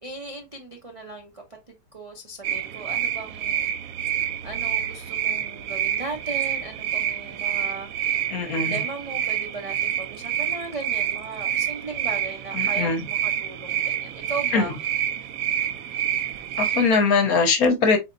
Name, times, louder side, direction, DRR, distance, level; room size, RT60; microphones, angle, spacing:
voice 1, 0.0-3.7 4.4-8.2 8.5-14.8, right 3 dB, 65° right, 0.3 m, -37 dB
sound 1, 2.4-16.9, right 10 dB, 80° right, 0.7 m, -28 dB
voice 2, 8.3-8.8 12.5-13.1 14.5-14.7 16.6-18.0, left 4 dB, 60° left, 1.1 m, -21 dB
4.1 x 4.0 x 2.6 m
omnidirectional pair, 2.0 m